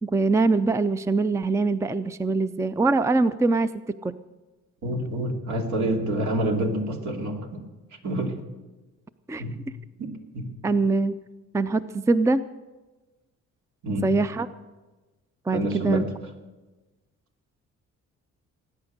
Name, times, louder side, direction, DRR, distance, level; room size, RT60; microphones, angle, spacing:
voice 1, 0.0-4.1 9.3-9.4 10.6-11.2 11.5-12.4 14.0-14.5 15.5-16.0, right 3 dB, 10° right, 14 dB, 0.5 m, -23 dB
voice 2, 4.8-7.6 8.0-8.4 9.4-9.6 10.0-10.5 13.8-14.2 15.5-16.1, right 1 dB, 70° right, 2 dB, 2.7 m, -27 dB
19.0 x 9.7 x 6.6 m, 1.2 s
cardioid pair, 90°, 30 cm